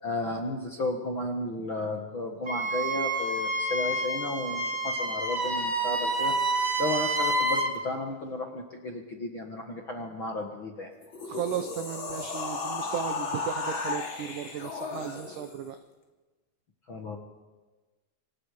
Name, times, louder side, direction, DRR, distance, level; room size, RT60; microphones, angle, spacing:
voice 1, 0.0-6.3 6.8-10.9 16.9-17.2, left 2 dB, 55° left, 2 dB, 1.4 m, -33 dB
Wind instrument woodwind instrument, 2.5-7.7, right 2 dB, 40° right, 1.1 m, -28 dB
sound 1, 11.0-15.6, left 3 dB, 35° left, 2.8 m, -34 dB
voice 2, 11.2-15.8, right 9 dB, 85° right, 8 dB, 1.8 m, -35 dB
26.5 x 26.0 x 5.0 m, 1.2 s
omnidirectional pair, 4.8 m